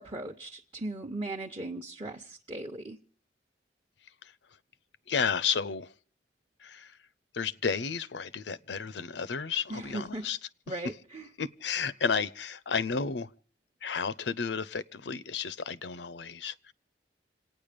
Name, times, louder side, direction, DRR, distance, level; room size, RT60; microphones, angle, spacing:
voice 1, 0.0-3.0 9.7-10.3 10.7-11.3, right 2 dB, 30° right, 0.9 m, -38 dB
voice 2, 5.1-5.9 6.6-7.0 7.3-10.4 10.7-10.8 11.4-13.3 13.8-16.7, left 6 dB, 75° left, 0.6 m, -32 dB
27.0 x 9.3 x 5.1 m
head